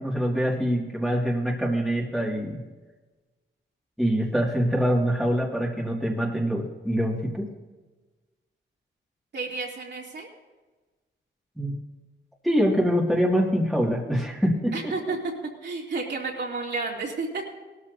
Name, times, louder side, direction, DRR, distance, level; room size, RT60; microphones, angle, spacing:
voice 1, 0.0-2.6 4.0-7.5 11.6-11.8 12.4-14.9, equal, ahead, -2 dB, 2.1 m, -24 dB
voice 2, 9.3-10.3 14.7-15.2 15.6-17.4, right 3 dB, 60° right, -2 dB, 2.9 m, -31 dB
19.5 x 13.0 x 2.7 m, 1.2 s
wide cardioid pair, 120°, 20 cm